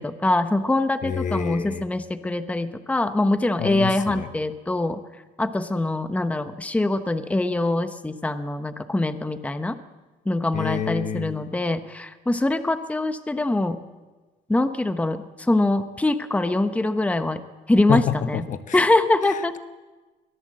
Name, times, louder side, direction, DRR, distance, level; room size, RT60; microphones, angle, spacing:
voice 1, 0.0-5.0 5.4-9.8 10.3-13.8 14.5-17.4 17.7-18.4 18.7-19.5, left 2 dB, 10° left, 9 dB, 1.0 m, -23 dB
voice 2, 1.0-1.9 3.6-4.3 10.5-11.5 17.9-18.8 19.2-19.6, left 7 dB, 50° left, 10 dB, 1.3 m, -28 dB
22.5 x 18.0 x 7.7 m, 1.2 s
cardioid pair, 110°, 17 cm